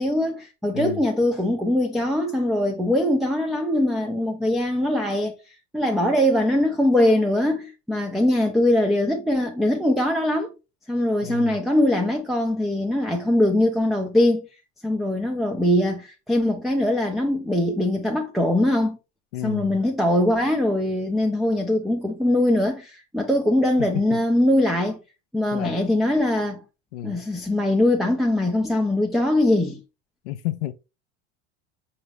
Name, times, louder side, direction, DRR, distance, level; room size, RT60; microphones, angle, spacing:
voice 1, 0.0-5.3 5.7-10.5 10.9-14.5 14.8-19.0 19.4-25.0 25.3-26.6 27.0-29.8, left 1 dB, ahead, 0.4 m, -22 dB
voice 2, 0.7-1.0 11.2-11.6 19.3-19.8 23.8-24.2 25.5-25.8 26.9-27.2 30.2-30.7, left 14 dB, 80° left, 0.5 m, -31 dB
4.7 x 2.5 x 3.2 m
hypercardioid pair, 95°, 33 cm